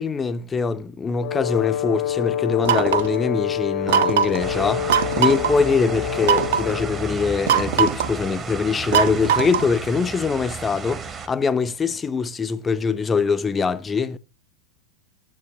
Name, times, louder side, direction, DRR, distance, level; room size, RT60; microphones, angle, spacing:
voice 1, 0.0-14.2, left 5 dB, 15° left, 0.5 m, -23 dB
Brass instrument, 1.2-7.2, left 10 dB, 55° left, 0.7 m, -27 dB
sound 1, 2.6-3.2 3.9-4.4 4.9-5.5 6.2-6.7 7.5-8.1 8.9-9.8, right 8 dB, 55° right, 0.6 m, -20 dB
sound 2, 4.4-11.3, right 4 dB, 20° right, 0.8 m, -32 dB
9.5 x 7.3 x 3.0 m
figure-of-eight pair, 90°, 0 cm